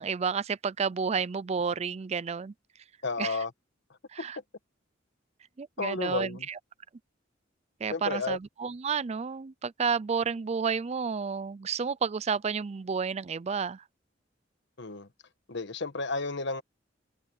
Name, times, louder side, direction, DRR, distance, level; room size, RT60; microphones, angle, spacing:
voice 1, 0.0-2.5 3.2-3.4 4.1-4.4 5.6-6.6 7.8-13.8, right 6 dB, 35° right, 0.4 m, -31 dB
voice 2, 3.0-3.5 4.2-4.3 5.8-6.5 7.9-8.4 14.8-15.1 15.5-16.6, left 3 dB, 65° left, 1.3 m, -32 dB
head